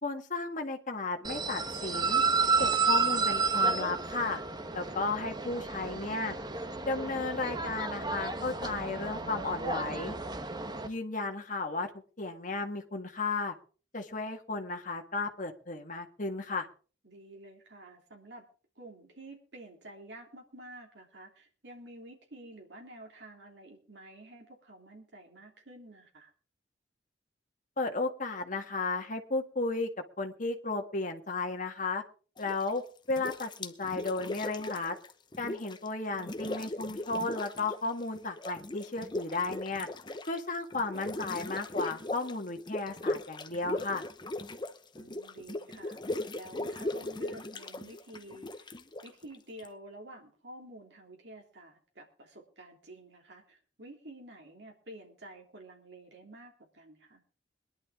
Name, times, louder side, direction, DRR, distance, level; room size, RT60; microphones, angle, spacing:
voice 1, 0.0-2.2 2.6-4.4 4.7-6.3 6.8-10.2 10.8-11.9 12.2-13.5 13.9-16.7 27.8-29.9 30.2-32.0 32.4-32.8 33.1-35.0 35.4-39.9 40.3-44.0, left 3 dB, 45° left, 4 dB, 1.7 m, -34 dB
sound 1, 1.2-10.9, right 4 dB, 25° right, 1.1 m, -31 dB
voice 2, 17.0-18.4 18.7-26.3 45.0-48.7 49.0-57.2, right 1 dB, 70° right, 1 dB, 3.2 m, -50 dB
sound 2, 32.4-32.8 33.1-35.9 36.1-37.9 38.1-49.7, left 2 dB, 25° left, 0.9 m, -38 dB
22.0 x 11.0 x 3.7 m, 0.39 s
head